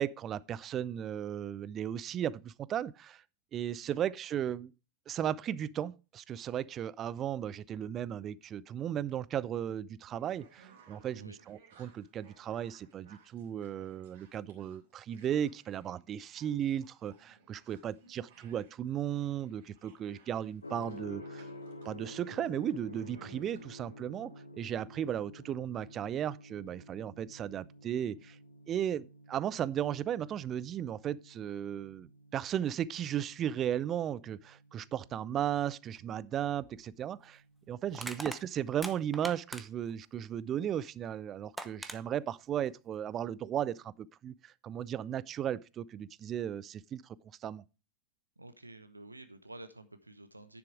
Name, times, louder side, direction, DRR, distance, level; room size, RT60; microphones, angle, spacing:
voice 1, 0.0-3.2 3.5-4.7 5.1-21.5 21.8-28.4 28.7-37.4 37.7-47.2 47.4-47.6, right 10 dB, 30° right, 0.4 m, -35 dB
sound 1, 10.0-23.9, right 5 dB, 55° right, 3.3 m, -62 dB
Gong, 20.6-38.5, left 1 dB, 80° left, 1.1 m, -52 dB
Crushing, 36.6-36.7 37.9-39.9 41.1-41.2 41.6-42.0, right 1 dB, 5° right, 0.8 m, -41 dB
voice 2, 48.4-50.6, right 1 dB, 85° right, 0.8 m, -50 dB
9.8 x 7.1 x 4.6 m
figure-of-eight pair, 90°, 0 cm